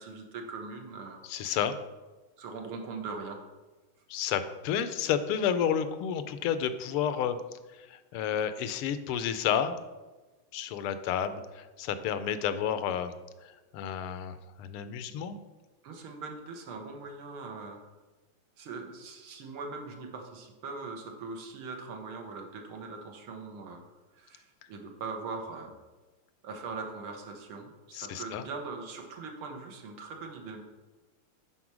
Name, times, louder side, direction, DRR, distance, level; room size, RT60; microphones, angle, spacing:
voice 1, 0.0-1.2 2.4-3.4 15.8-17.8 18.6-23.8 24.1-25.8 26.4-30.6, right 4 dB, 75° right, 2 dB, 2.0 m, -41 dB
voice 2, 1.2-1.7 4.1-7.4 7.7-9.8 10.5-13.1 13.4-15.4 27.9-28.4, left 8 dB, 80° left, 11 dB, 1.6 m, -31 dB
10.0 x 4.4 x 6.1 m, 1.2 s
omnidirectional pair, 2.4 m